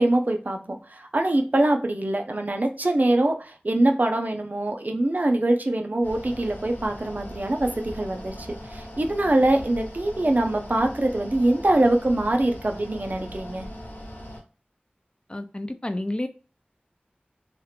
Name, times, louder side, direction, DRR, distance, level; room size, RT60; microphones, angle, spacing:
voice 1, 0.0-13.7, right 1 dB, 55° right, 0.6 m, -23 dB
Mechanical fan, 6.0-14.4, equal, 65° left, 1.0 m, -40 dB
voice 2, 15.3-16.3, left 1 dB, 30° left, 0.4 m, -30 dB
2.9 x 2.4 x 3.3 m
wide cardioid pair, 50°, 3 cm